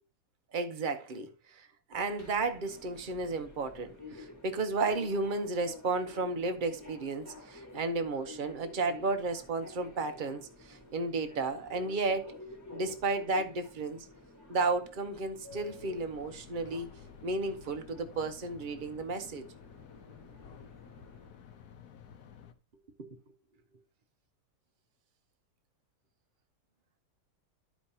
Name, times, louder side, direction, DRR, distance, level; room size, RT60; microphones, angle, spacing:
voice 1, 0.5-12.3 12.7-14.1 14.5-16.9 17.2-19.5 23.0-23.1, right 3 dB, 40° right, 0.7 m, -33 dB
Subway metro underground, 1.9-21.3, left 2 dB, 10° left, 1.5 m, -51 dB
sound 1, 15.5-22.5, left 8 dB, 70° left, 1.3 m, -53 dB
12.5 x 5.1 x 2.8 m
omnidirectional pair, 1.8 m